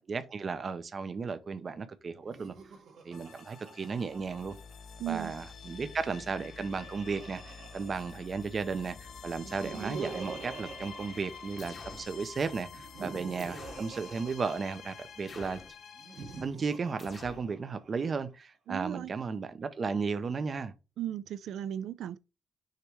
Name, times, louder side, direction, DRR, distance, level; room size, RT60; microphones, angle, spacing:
voice 1, 0.1-2.5 3.0-4.6 5.1-15.6 16.4-20.7, right 5 dB, 30° right, 0.6 m, -35 dB
Laughter, 2.2-5.0 6.1-8.7 9.3-12.0 12.7-15.1 16.0-18.1, right 4 dB, 55° right, 1.4 m, -46 dB
sound 1, 3.1-16.4, left 6 dB, 70° left, 1.4 m, -48 dB
voice 2, 5.0-5.3 18.7-19.1 21.0-22.2, right 11 dB, 80° right, 0.4 m, -36 dB
sound 2, 11.6-12.1 13.4-13.9 15.3-15.8 17.0-17.5, left 4 dB, 35° left, 0.8 m, -48 dB
6.6 x 3.0 x 4.6 m
wide cardioid pair, 175°, 0 cm